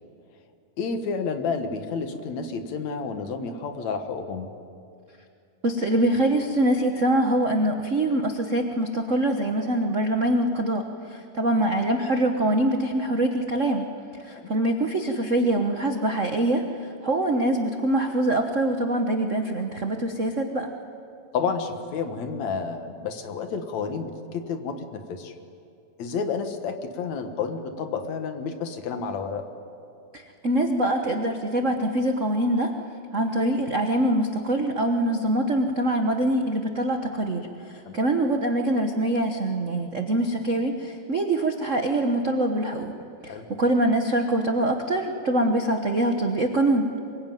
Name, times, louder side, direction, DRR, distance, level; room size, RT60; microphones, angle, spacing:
voice 1, 0.8-4.5 14.3-14.5 21.3-25.3 26.0-29.4 37.9-38.0 43.3-43.5, left 5 dB, 70° left, 7 dB, 2.7 m, -30 dB
voice 2, 5.6-13.9 14.2-20.7 30.1-32.7 33.1-42.9 43.2-46.9, right 1 dB, 80° right, 4 dB, 0.6 m, -24 dB
24.0 x 22.0 x 9.2 m, 2.5 s
omnidirectional pair, 3.4 m